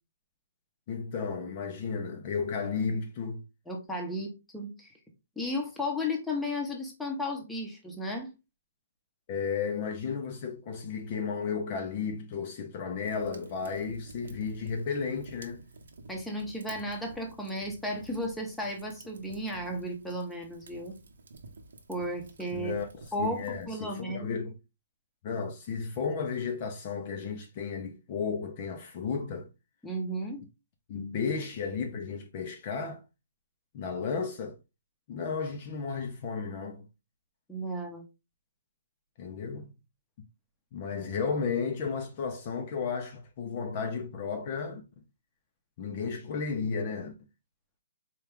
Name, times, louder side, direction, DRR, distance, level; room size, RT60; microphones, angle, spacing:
voice 1, 0.9-3.4 9.3-15.6 22.5-22.9 23.2-24.6 25.2-29.5 30.9-33.0 33.7-34.6 35.1-36.9 39.2-39.7 40.7-44.8 45.8-47.1, left 5 dB, 35° left, 0.5 m, -33 dB
voice 2, 3.7-4.9 5.4-8.3 16.1-21.0 21.9-22.8 23.1-24.4 29.8-30.4 37.5-38.1, left 1 dB, 5° left, 0.8 m, -34 dB
Fire, 13.0-23.7, right 3 dB, 75° right, 0.8 m, -50 dB
4.3 x 2.3 x 3.4 m
hypercardioid pair, 165°, 0 cm